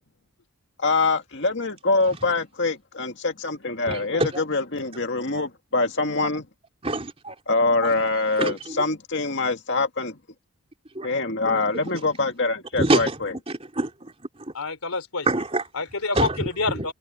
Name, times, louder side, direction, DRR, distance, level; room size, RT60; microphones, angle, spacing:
voice 1, 0.8-6.5 7.5-10.2 11.0-13.3, left 3 dB, 55° left, 2.2 m, -24 dB
voice 2, 3.9-4.4 6.8-7.3 7.8-7.9 8.4-8.8 10.9-11.1 11.5-11.6 12.7-13.2 13.5-14.1 14.4-14.5 15.3-15.6 16.1-16.4 16.8-16.9, right 2 dB, 25° right, 3.3 m, -26 dB
voice 3, 14.5-15.3 15.7-16.9, left 3 dB, 75° left, 3.3 m, -27 dB
head